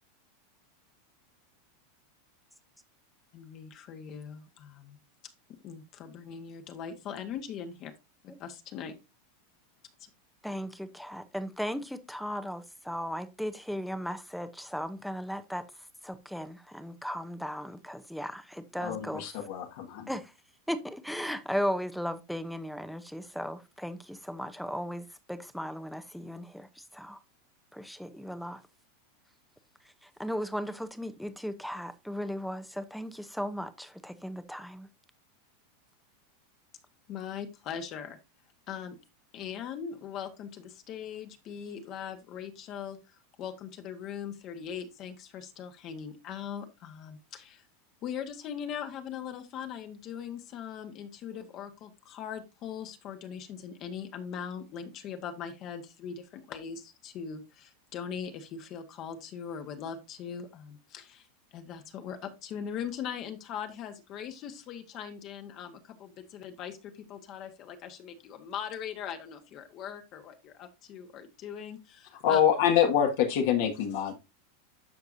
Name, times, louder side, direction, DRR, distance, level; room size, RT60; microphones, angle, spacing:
voice 1, 3.3-5.0 5.6-7.9 8.4-9.0 10.0-10.1 37.1-38.2 38.7-39.0 39.3-47.6 48.0-61.3 61.5-72.4, left 8 dB, 40° left, 1.4 m, -40 dB
voice 2, 10.4-15.6 16.0-19.3 20.1-20.3 20.7-27.2 27.7-28.6 30.2-34.9, equal, ahead, 0.8 m, -36 dB
voice 3, 18.8-20.1 72.2-74.1, left 9 dB, 65° left, 1.8 m, -26 dB
12.0 x 4.7 x 2.7 m
supercardioid pair, 130°, 0 cm